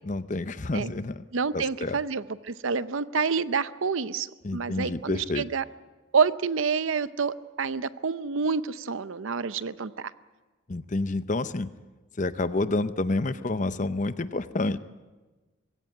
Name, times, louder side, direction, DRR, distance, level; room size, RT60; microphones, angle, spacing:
voice 1, 0.0-1.2 1.5-2.0 4.4-5.4 10.7-11.7 12.2-14.8, left 2 dB, 35° left, 13 dB, 0.7 m, -29 dB
voice 2, 1.3-4.3 4.5-5.6 6.1-10.1, right 5 dB, 70° right, 15 dB, 0.7 m, -28 dB
21.0 x 16.5 x 9.4 m, 1.3 s
head